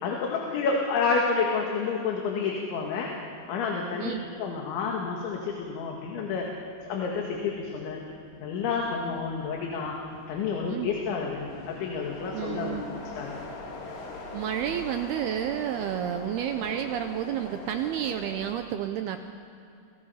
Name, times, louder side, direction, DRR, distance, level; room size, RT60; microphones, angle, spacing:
voice 1, 0.0-3.1 3.5-6.5 6.8-8.0 8.4-10.0 10.3-13.4, left 5 dB, 75° left, 0 dB, 4.3 m, -29 dB
sound 1, 4.2-18.5, left 3 dB, 60° left, 4.6 m, -43 dB
voice 2, 12.3-12.8 14.3-19.2, right 10 dB, 80° right, 7 dB, 2.3 m, -30 dB
29.0 x 22.0 x 5.7 m, 2.8 s
omnidirectional pair, 5.5 m